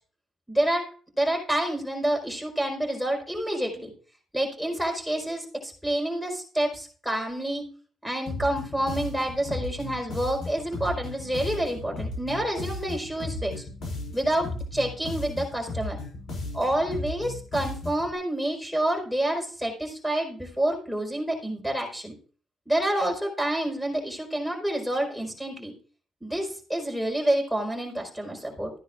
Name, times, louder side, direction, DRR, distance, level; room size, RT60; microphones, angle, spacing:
voice 1, 0.5-0.8 1.2-3.9 4.3-7.6 8.0-13.6 14.1-16.0 16.5-22.1 22.7-25.7 26.2-28.7, right 1 dB, ahead, 1 dB, 4.8 m, -28 dB
sound 1, 8.3-18.1, left 2 dB, 65° left, 6.5 m, -35 dB
14.0 x 10.0 x 2.5 m, 0.40 s
cardioid pair, 90°, 0 cm